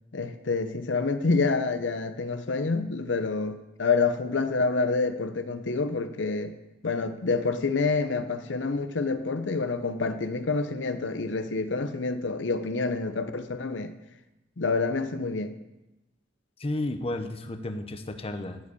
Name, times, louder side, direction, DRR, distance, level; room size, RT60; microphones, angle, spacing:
voice 1, 0.1-6.5 6.8-13.9 14.6-15.5, left 4 dB, 80° left, 10 dB, 0.7 m, -27 dB
voice 2, 16.6-18.6, left 1 dB, 35° left, 7 dB, 0.8 m, -32 dB
13.5 x 5.1 x 8.3 m, 0.98 s
head